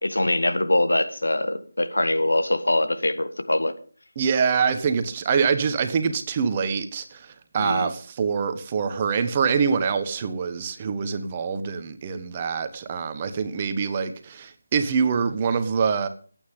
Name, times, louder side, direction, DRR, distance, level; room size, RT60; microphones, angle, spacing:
voice 1, 0.0-3.7 7.6-7.9, left 1 dB, 75° left, 1.5 m, -23 dB
voice 2, 4.2-16.1, right 6 dB, 25° right, 1.3 m, -25 dB
26.5 x 9.0 x 3.7 m
figure-of-eight pair, 160°, 0 cm